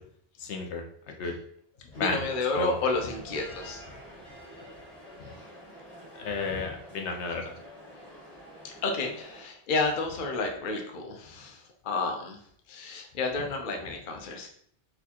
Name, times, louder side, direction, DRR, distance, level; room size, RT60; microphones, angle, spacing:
voice 1, 0.4-1.3 2.0-2.2 2.5-2.7 6.2-7.5, left 4 dB, 85° left, 2 dB, 0.9 m, -32 dB
voice 2, 1.8-4.0 5.2-5.3 6.5-6.6 8.6-12.4 12.7-14.5, left 3 dB, 55° left, 2 dB, 0.7 m, -31 dB
sound 1, 1.9-9.4, equal, 25° left, 0.9 m, -48 dB
4.2 x 2.4 x 2.8 m, 0.64 s
omnidirectional pair, 1.1 m